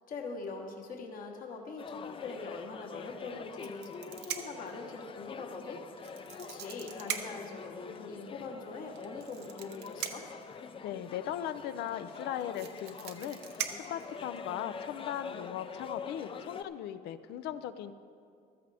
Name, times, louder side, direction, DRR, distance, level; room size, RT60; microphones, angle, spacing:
voice 1, 0.1-5.8 6.4-10.3, left 4 dB, 55° left, 1 dB, 1.3 m, -42 dB
sound 1, 1.8-16.6, left 5 dB, 30° left, 0.5 m, -46 dB
sound 2, 3.5-4.7 6.0-7.5 9.0-10.4 11.9-12.0 12.2-14.6 15.5-15.7 16.0-16.3, right 9 dB, 80° right, 0.9 m, -40 dB
voice 2, 10.8-17.9, left 10 dB, 80° left, 11 dB, 0.6 m, -38 dB
14.5 x 13.0 x 3.5 m, 2.4 s
cardioid pair, 110°, 17 cm